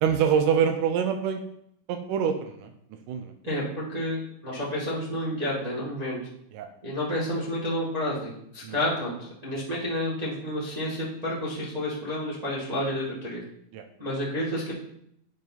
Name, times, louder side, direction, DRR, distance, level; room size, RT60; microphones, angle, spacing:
voice 1, 0.0-1.4 1.9-2.7 3.1-3.3 6.5-6.7 8.6-8.8 13.7-13.8, right 7 dB, 85° right, 6 dB, 1.8 m, -25 dB
voice 2, 3.4-6.2 6.8-13.4 14.0-14.7, left 1 dB, 30° right, -7 dB, 0.6 m, -30 dB
8.9 x 5.3 x 4.0 m, 0.72 s
omnidirectional pair, 4.4 m